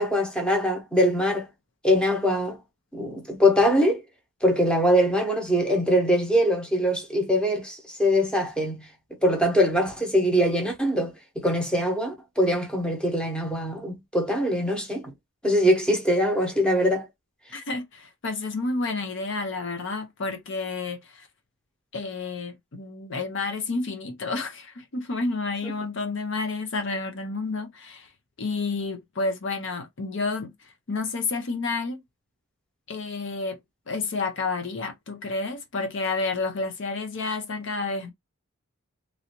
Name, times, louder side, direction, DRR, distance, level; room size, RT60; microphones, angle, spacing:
voice 1, 0.0-1.5 1.8-2.6 2.9-4.0 4.4-8.9 9.2-15.1 15.4-17.1, equal, 5° left, 0.9 m, -23 dB
voice 2, 17.5-21.3 21.9-28.1 28.4-32.0 32.9-33.6 33.9-38.1, left 3 dB, 60° left, 0.7 m, -30 dB
3.1 x 2.6 x 2.9 m
head